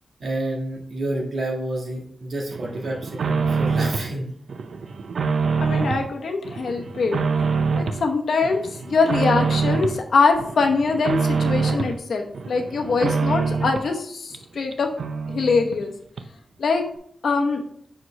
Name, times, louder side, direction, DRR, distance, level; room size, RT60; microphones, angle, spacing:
voice 1, 0.2-4.3, right 1 dB, 55° right, -1 dB, 1.5 m, -29 dB
sound 1, 2.5-4.1 4.5-6.1 6.4-8.1 8.4-10.0 10.4-12.0 12.3-13.9 14.3-14.4 14.7-14.8 15.0-15.8 16.2-16.3, right 5 dB, 80° right, 0.5 m, -25 dB
voice 2, 5.6-7.2 7.7-8.6 8.8-14.9 15.3-15.9 16.6-16.8 17.2-17.6, left 4 dB, 80° left, 3 dB, 0.9 m, -22 dB
6.1 x 5.0 x 3.2 m, 0.67 s
wide cardioid pair, 150°, 0 cm